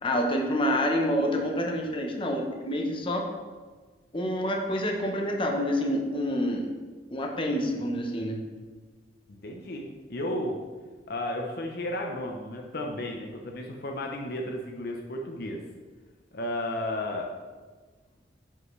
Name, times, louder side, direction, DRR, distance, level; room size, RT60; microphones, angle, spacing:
voice 1, 0.0-3.3 4.1-6.7 7.1-8.4, equal, 30° left, 1 dB, 0.9 m, -27 dB
voice 2, 9.3-10.6 11.1-15.6 16.3-17.3, left 1 dB, 60° left, 1 dB, 0.7 m, -33 dB
9.5 x 5.6 x 3.2 m, 1.4 s
head